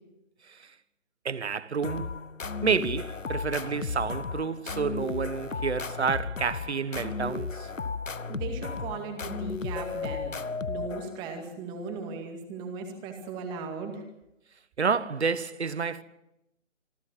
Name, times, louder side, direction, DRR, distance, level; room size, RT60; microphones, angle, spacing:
voice 1, 1.2-2.2 2.6-7.7 14.8-16.0, right 5 dB, 60° right, 1.3 m, -29 dB
sound 1, 1.8-11.3, left 4 dB, 85° left, 1.2 m, -34 dB
voice 2, 8.3-10.4 10.7-14.0, right 4 dB, 10° right, 2.1 m, -37 dB
26.0 x 13.5 x 7.6 m
figure-of-eight pair, 150°, 38 cm